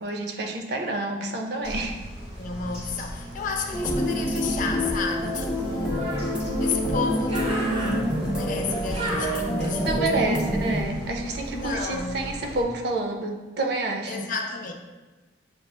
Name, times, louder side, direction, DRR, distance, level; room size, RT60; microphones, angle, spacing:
voice 1, 0.0-2.0 9.8-14.3, right 2 dB, 65° right, 2 dB, 0.5 m, -28 dB
Bird, 1.6-12.6, equal, 35° right, 1.0 m, -35 dB
voice 2, 2.4-6.2 6.6-10.4 11.5-12.2 14.1-14.7, left 4 dB, 45° left, 3 dB, 0.4 m, -32 dB
sound 1, 3.7-10.8, equal, 5° right, 0.5 m, -27 dB
6.7 x 2.3 x 2.2 m, 1.3 s
head